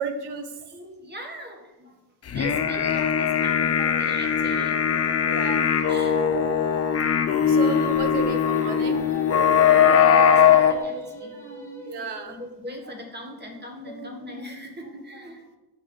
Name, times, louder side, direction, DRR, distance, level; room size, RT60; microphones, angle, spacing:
voice 1, 0.0-0.5 5.3-5.7 7.4-9.2 11.8-12.4, right 5 dB, 80° right, 7 dB, 1.0 m, -32 dB
voice 2, 0.6-5.0 5.9-7.0 9.3-15.6, equal, 25° right, 1 dB, 1.5 m, -40 dB
sound 1, 2.3-10.7, left 8 dB, 40° left, 0.6 m, -20 dB
Singing, 7.3-12.5, left 1 dB, 5° left, 1.2 m, -39 dB
7.1 x 4.4 x 5.2 m, 1.1 s
cardioid pair, 105°, 39 cm